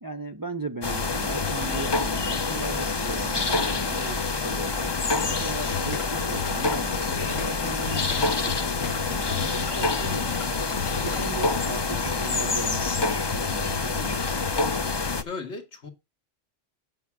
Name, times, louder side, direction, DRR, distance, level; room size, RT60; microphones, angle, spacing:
voice 1, 0.0-4.9 5.2-10.3 11.0-14.3, right 3 dB, 30° right, 0.4 m, -37 dB
sound 1, 0.8-15.2, left 3 dB, 30° left, 0.5 m, -27 dB
sound 2, 5.7-11.4, left 9 dB, 85° left, 1.1 m, -37 dB
voice 2, 15.2-15.9, left 4 dB, 65° left, 2.0 m, -36 dB
8.7 x 7.5 x 4.7 m
omnidirectional pair, 1.2 m